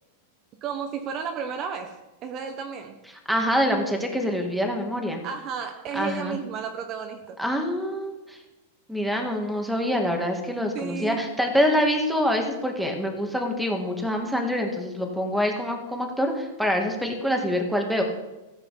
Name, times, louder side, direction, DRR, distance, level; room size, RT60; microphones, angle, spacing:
voice 1, 0.6-3.0 5.2-7.4 10.7-11.2, right 7 dB, 35° right, 6 dB, 1.2 m, -33 dB
voice 2, 3.3-5.2 5.9-6.4 7.4-8.4 8.9-18.0, equal, ahead, 2 dB, 2.0 m, -25 dB
15.0 x 7.8 x 5.8 m, 1.0 s
supercardioid pair, 140°, 0 cm